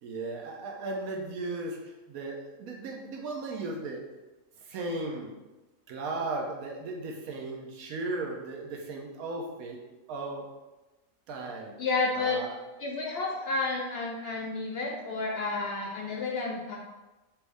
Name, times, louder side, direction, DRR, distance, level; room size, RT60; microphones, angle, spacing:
voice 1, 0.0-1.8 2.1-4.0 4.6-5.3 5.9-9.8 10.1-10.5 11.3-11.7 12.1-12.6, right 2 dB, 90° right, 0 dB, 1.2 m, -36 dB
voice 2, 11.8-12.4 12.8-16.8, left 3 dB, 65° left, 0 dB, 0.6 m, -31 dB
4.5 x 2.6 x 3.4 m, 1.1 s
omnidirectional pair, 1.5 m